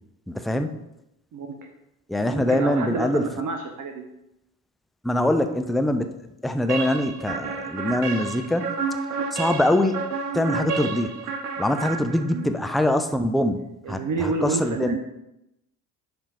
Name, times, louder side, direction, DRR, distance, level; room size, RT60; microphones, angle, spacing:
voice 1, 0.3-0.7 2.1-3.3 5.0-6.1 6.4-8.7 9.3-10.1 10.3-11.2 11.6-13.6 13.9-15.0, left 1 dB, ahead, 7 dB, 0.3 m, -23 dB
voice 2, 2.3-4.1 12.2-12.5 13.8-15.0, right 4 dB, 40° right, 4 dB, 1.0 m, -29 dB
sound 1, 6.7-12.6, right 5 dB, 80° right, 0.8 m, -30 dB
10.5 x 3.5 x 4.3 m, 0.87 s
figure-of-eight pair, 55°, 46 cm